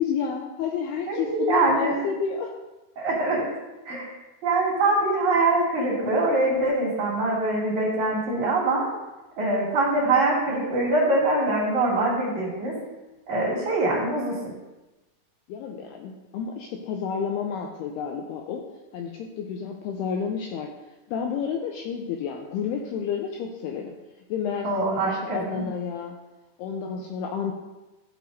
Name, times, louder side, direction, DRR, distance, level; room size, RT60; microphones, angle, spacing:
voice 1, 0.0-2.6 15.5-18.7 18.9-20.7 21.1-23.9 24.3-26.2 26.6-27.5, left 7 dB, 90° left, 1 dB, 2.3 m, -30 dB
voice 2, 1.1-2.0 3.0-3.4 3.8-4.1 4.4-8.9 9.4-12.7 13.3-14.3 24.6-25.6, right 2 dB, 45° right, -5 dB, 3.2 m, -23 dB
15.5 x 6.8 x 2.6 m, 1.1 s
omnidirectional pair, 5.4 m